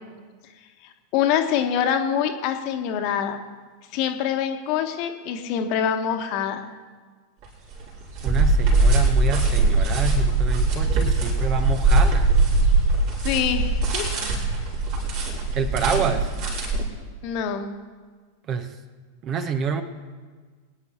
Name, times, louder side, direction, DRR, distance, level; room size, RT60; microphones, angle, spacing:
voice 1, 1.1-3.4 3.9-6.6 13.2-14.0 17.2-17.7, left 8 dB, 45° left, 6 dB, 1.4 m, -25 dB
sound 1, 7.4-7.5 7.7-16.8, right 2 dB, 50° right, 4.0 m, -21 dB
voice 2, 8.2-12.3 15.5-16.3 18.5-18.7 19.2-19.8, right 6 dB, 35° right, 10 dB, 1.1 m, -27 dB
23.0 x 9.6 x 4.5 m, 1.5 s
figure-of-eight pair, 90°, 0 cm